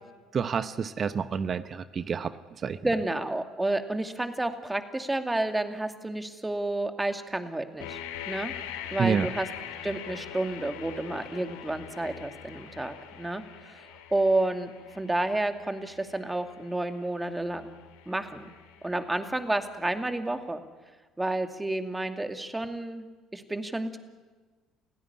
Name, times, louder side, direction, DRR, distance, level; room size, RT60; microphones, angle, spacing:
voice 1, 0.3-2.8 9.0-9.3, right 6 dB, 40° right, 13 dB, 1.0 m, -29 dB
voice 2, 2.8-8.0 8.3-8.5 8.9-9.5 9.8-17.8 18.1-18.5 18.8-20.6 21.2-23.1 23.3-24.0, right 2 dB, 10° right, 7 dB, 2.5 m, -30 dB
sound 1, 7.8-19.6, left 9 dB, 75° left, 2.5 m, -43 dB
29.5 x 16.0 x 9.7 m, 1.4 s
hypercardioid pair, 60°, 0 cm